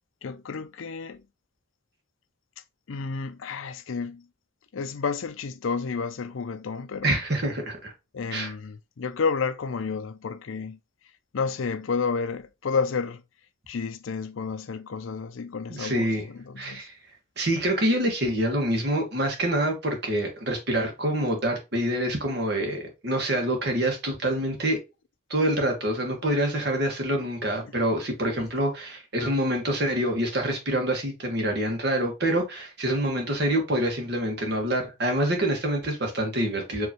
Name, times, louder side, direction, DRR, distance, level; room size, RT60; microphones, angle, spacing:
voice 1, 0.2-1.2 2.9-4.3 4.7-7.2 8.1-10.8 11.3-13.2 13.7-16.9, left 5 dB, 85° left, 0.5 m, -31 dB
voice 2, 7.0-7.9 8.3-8.5 15.7-16.3 16.6-16.9 17.4-24.8 25.3-36.9, right 1 dB, 55° right, 1.5 m, -26 dB
4.8 x 3.0 x 2.9 m
head